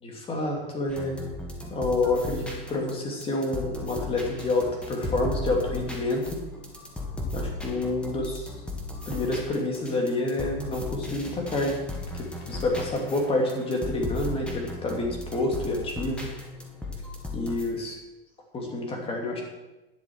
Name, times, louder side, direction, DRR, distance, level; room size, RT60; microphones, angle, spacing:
voice 1, 0.0-1.2 1.7-6.4 7.3-8.5 9.1-11.8 12.1-16.3 17.3-17.9 18.5-19.4, left 2 dB, 20° left, 1 dB, 2.6 m, -28 dB
sound 1, 0.9-17.6, left 2 dB, 5° left, 1.6 m, -36 dB
10.5 x 7.5 x 6.3 m, 1.0 s
supercardioid pair, 140°, 29 cm